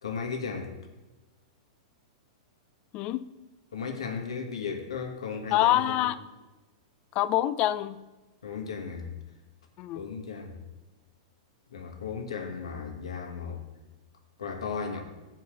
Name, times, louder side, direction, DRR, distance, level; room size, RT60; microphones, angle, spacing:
voice 1, 0.0-0.7 3.7-6.1 8.4-9.1 9.9-10.6 11.7-13.6 14.4-15.0, left 5 dB, 85° left, 3 dB, 1.4 m, -35 dB
voice 2, 2.9-3.2 5.5-6.2 7.1-8.0 9.8-10.0, left 14 dB, 40° left, 15 dB, 0.4 m, -25 dB
8.2 x 4.6 x 6.2 m, 1.1 s
hypercardioid pair, 115°, 3 cm